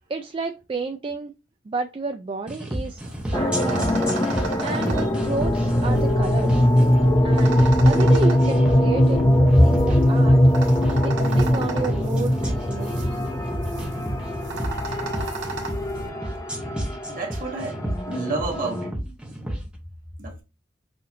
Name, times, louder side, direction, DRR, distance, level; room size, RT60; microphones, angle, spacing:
voice 1, 0.1-1.3 1.7-3.0 3.3-4.0 4.6-6.7 7.2-10.4 11.0-13.1, right 3 dB, 30° right, 0.3 m, -31 dB
sound 1, 2.5-19.6, right 1 dB, 5° right, 0.9 m, -32 dB
sound 2, 2.9-16.1, right 2 dB, 90° right, 1.2 m, -35 dB
sound 3, 3.3-18.9, equal, 20° left, 0.5 m, -21 dB
voice 2, 17.1-17.8 18.0-18.9 20.2-20.4, equal, 50° right, 1.2 m, -25 dB
5.7 x 2.6 x 2.5 m
head